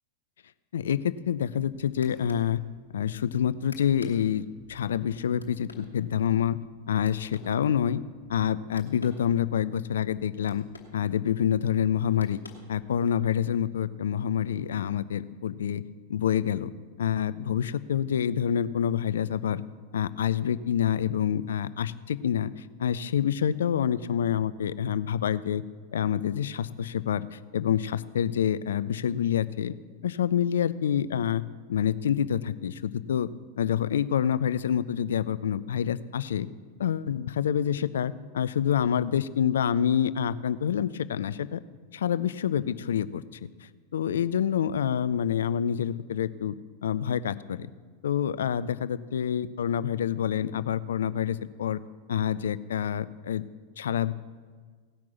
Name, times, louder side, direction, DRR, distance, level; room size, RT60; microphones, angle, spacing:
voice 1, 0.7-2.6 2.9-6.6 6.9-8.0 8.3-10.6 10.9-12.4 12.7-15.8 16.1-16.7 17.0-19.6 19.9-25.6 25.9-29.7 30.0-31.4 31.7-33.3 33.6-36.5 36.8-41.6 41.9-43.2 43.6-46.6 46.8-47.7 48.0-51.8 52.1-53.4 53.8-54.1, left 9 dB, 65° left, 16 dB, 0.5 m, -27 dB
sound 1, 1.3-13.2, left 4 dB, 80° left, 1.8 m, -54 dB
17.0 x 6.0 x 8.3 m, 1.5 s
figure-of-eight pair, 90°, 0 cm